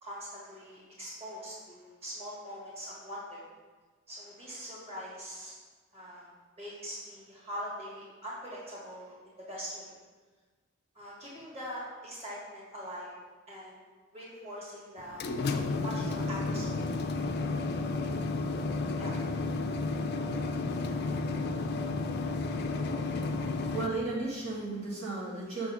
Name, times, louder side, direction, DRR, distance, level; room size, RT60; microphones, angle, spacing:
voice 1, 0.0-3.4 4.1-5.5 5.9-6.3 6.6-9.9 11.0-13.2 13.5-13.8 14.1-15.2 15.8-16.9 18.4-18.7 19.0-19.2, equal, 30° right, -7 dB, 1.7 m, -42 dB
sound 1, 15.0-23.9, left 3 dB, 50° left, 0.3 m, -32 dB
voice 2, 23.6-25.7, right 3 dB, 85° right, -6 dB, 1.7 m, -34 dB
6.1 x 3.5 x 4.9 m, 1.4 s
head